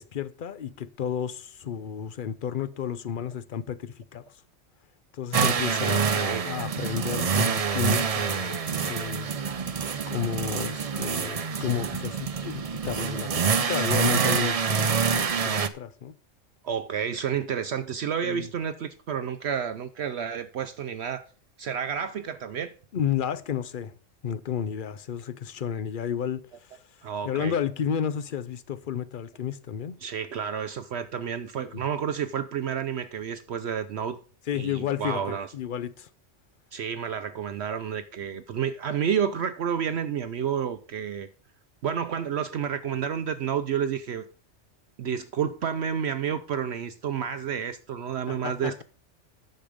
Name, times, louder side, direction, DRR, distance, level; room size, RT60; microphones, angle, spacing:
voice 1, 0.0-4.2 5.1-9.3 10.1-16.1 18.2-18.5 22.9-24.0 24.2-26.8 27.2-29.9 31.6-31.7 34.5-36.1 48.3-48.8, left 8 dB, 55° left, 0.7 m, -32 dB
sound 1, 5.3-15.7, right 6 dB, 40° right, 0.5 m, -26 dB
voice 2, 5.8-6.4 16.6-21.2 21.6-22.7 27.0-27.5 30.0-34.2 34.5-35.5 36.7-41.3 41.8-44.3 45.0-48.8, right 8 dB, 65° right, 0.9 m, -30 dB
10.5 x 6.8 x 5.0 m
omnidirectional pair, 1.3 m